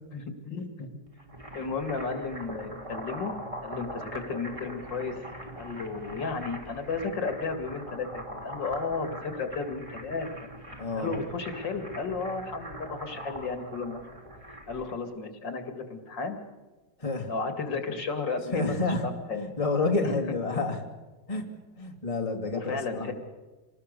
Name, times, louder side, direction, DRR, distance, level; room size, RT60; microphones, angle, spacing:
voice 1, 0.1-0.9 1.5-3.3 3.6-5.2 5.6-10.5 10.9-14.0 14.7-16.4 17.3-18.8 19.3-19.4 20.0-20.1 22.5-23.1, left 4 dB, 65° left, 7 dB, 3.0 m, -33 dB
sound 1, 1.1-14.9, right 1 dB, 15° right, 3.2 m, -42 dB
voice 2, 10.8-11.2 17.0-17.3 18.5-20.8 21.3-21.5 21.8-23.1, left 3 dB, 15° left, 2 dB, 2.3 m, -29 dB
26.5 x 19.5 x 6.8 m, 1.2 s
omnidirectional pair, 2.2 m